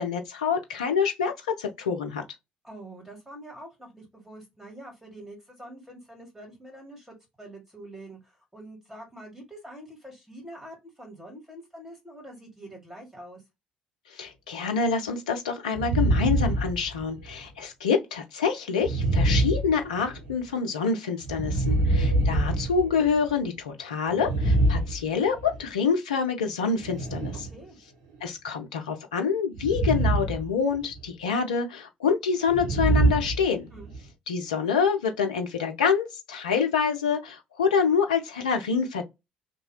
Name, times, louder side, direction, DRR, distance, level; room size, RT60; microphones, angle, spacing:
voice 1, 0.0-2.2 14.1-27.5 28.2-33.7 34.3-39.0, left 6 dB, 80° left, 0.4 m, -26 dB
voice 2, 2.6-13.4 21.5-21.9 27.4-27.8 33.7-33.9, right 1 dB, 5° right, 1.7 m, -45 dB
sound 1, 15.7-17.4 18.8-20.3 21.2-23.4 24.1-25.6 26.8-27.5 29.6-30.5 30.7-31.1 32.5-34.0, right 1 dB, 75° right, 0.9 m, -25 dB
2.7 x 2.1 x 3.1 m
figure-of-eight pair, 50°, 4 cm